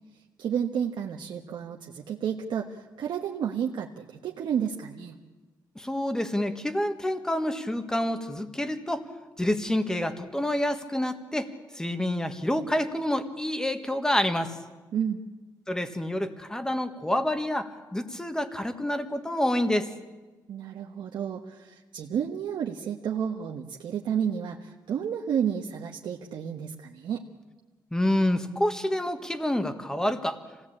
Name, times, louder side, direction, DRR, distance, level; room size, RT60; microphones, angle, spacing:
voice 1, 0.4-5.2 14.9-15.2 20.5-27.2, right 8 dB, 80° right, 0 dB, 1.3 m, -31 dB
voice 2, 5.7-9.1 9.4-14.6 15.7-19.9 27.9-30.4, left 1 dB, 10° left, 8 dB, 1.6 m, -28 dB
26.0 x 17.5 x 8.7 m, 1.3 s
cardioid pair, 130°, 8 cm